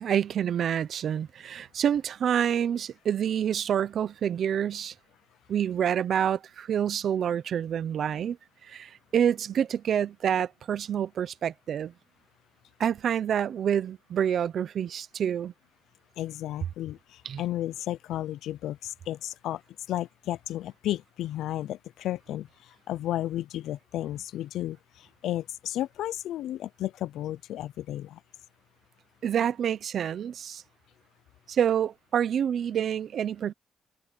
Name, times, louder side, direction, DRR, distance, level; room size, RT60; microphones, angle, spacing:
voice 1, 0.0-4.9 5.5-8.4 8.6-11.9 12.8-15.5 17.2-17.4 29.2-30.6 31.5-33.5, right 9 dB, 60° right, 0.9 m, -27 dB
voice 2, 16.2-19.6 19.9-28.2, left 13 dB, 80° left, 0.6 m, -33 dB
cardioid pair, 90°, 0 cm